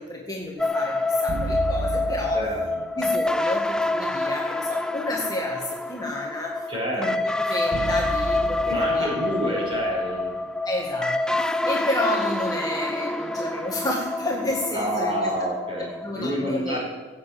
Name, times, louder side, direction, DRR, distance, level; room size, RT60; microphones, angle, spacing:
voice 1, 0.0-2.6 3.0-6.7 7.0-9.1 10.7-15.3 16.0-16.8, left 2 dB, 20° left, -2 dB, 1.7 m, -31 dB
sound 1, 0.6-16.1, left 2 dB, 5° left, 0.4 m, -27 dB
sound 2, 1.3-3.5 7.7-10.9, right 2 dB, 80° right, 0.8 m, -34 dB
voice 2, 6.7-7.1 8.7-10.3 14.7-15.9 16.1-16.8, equal, 30° right, -4 dB, 5.9 m, -27 dB
16.5 x 7.8 x 8.5 m, 1.3 s
head